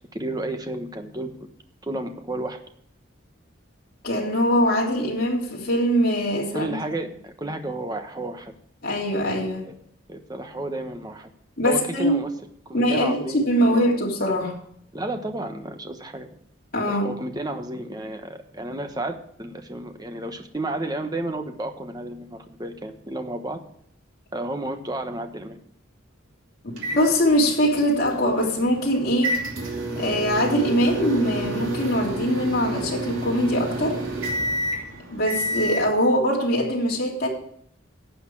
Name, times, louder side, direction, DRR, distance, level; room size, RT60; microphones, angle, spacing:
voice 1, 0.1-1.3 1.8-2.6 6.5-8.5 9.6-9.7 10.1-11.3 11.6-12.3 12.7-13.8 14.9-16.3 16.8-23.6 24.3-25.6, right 1 dB, 20° right, 6 dB, 1.1 m, -32 dB
voice 2, 4.0-6.7 8.8-9.6 11.6-12.2 12.7-14.5 16.7-17.1 26.9-29.3 29.9-34.0 35.1-37.3, equal, 50° left, -3 dB, 3.2 m, -22 dB
sound 1, 26.8-35.9, right 1 dB, 90° right, 2.8 m, -30 dB
12.0 x 8.3 x 4.7 m, 0.68 s
head